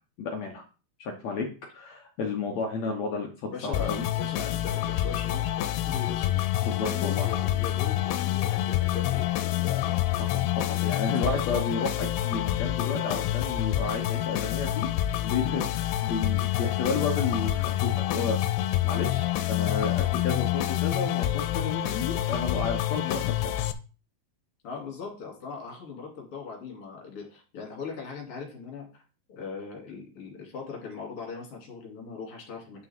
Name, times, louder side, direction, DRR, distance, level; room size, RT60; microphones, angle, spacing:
voice 1, 0.2-0.6 1.0-1.5 1.7-4.0 6.6-7.3 10.1-14.9 15.2-18.4 18.8-23.5, left 4 dB, 70° left, 1 dB, 1.7 m, -32 dB
voice 2, 3.5-6.3 6.7-10.0 11.2-11.4 24.6-29.0 29.3-32.9, left 5 dB, 40° left, -1 dB, 3.3 m, -40 dB
sound 1, 3.7-23.7, left 14 dB, 90° left, 2.7 m, -27 dB
9.4 x 5.9 x 3.6 m, 0.35 s
omnidirectional pair, 4.6 m